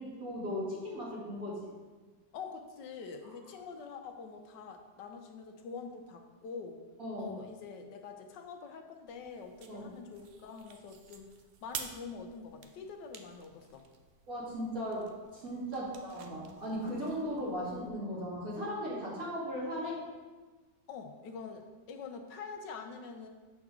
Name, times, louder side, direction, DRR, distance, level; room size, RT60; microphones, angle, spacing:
voice 1, 0.0-1.6 7.0-7.3 9.7-9.9 14.3-20.0, equal, 50° right, -7 dB, 2.1 m, -37 dB
voice 2, 2.3-6.8 7.2-11.3 11.6-13.8 15.7-16.0 20.9-23.3, left 5 dB, 75° left, 5 dB, 1.4 m, -45 dB
sound 1, 9.1-17.9, right 6 dB, 85° right, 0.5 m, -50 dB
8.0 x 6.2 x 3.7 m, 1.3 s
omnidirectional pair, 1.9 m